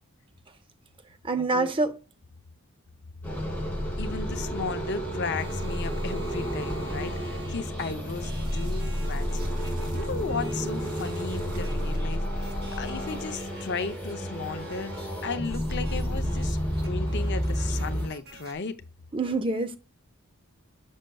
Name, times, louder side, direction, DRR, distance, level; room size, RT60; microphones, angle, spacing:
voice 1, 1.2-2.0 19.1-19.8, right 3 dB, 25° right, 0.6 m, -26 dB
sound 1, 3.2-18.1, equal, 10° left, 2.7 m, -30 dB
voice 2, 4.0-9.5 9.9-18.8, left 4 dB, 50° left, 0.7 m, -35 dB
sound 2, 5.4-18.5, right 4 dB, 45° right, 1.4 m, -49 dB
sound 3, 6.7-11.9, right 2 dB, 80° right, 1.9 m, -50 dB
6.5 x 6.3 x 2.3 m
head